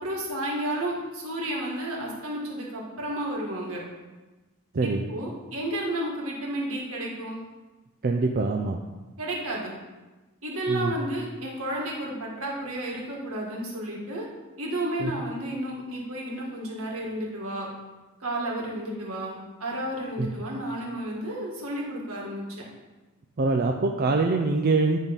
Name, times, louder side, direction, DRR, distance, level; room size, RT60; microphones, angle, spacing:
voice 1, 0.0-3.8 4.8-7.4 9.2-9.7 10.4-14.3 14.6-17.7 18.2-22.4, right 1 dB, 75° right, -3 dB, 2.0 m, -32 dB
voice 2, 8.0-8.8 10.7-10.9 15.0-15.1 20.2-20.3 23.4-25.0, right 3 dB, 45° right, 2 dB, 0.5 m, -24 dB
9.7 x 3.7 x 5.3 m, 1.2 s
head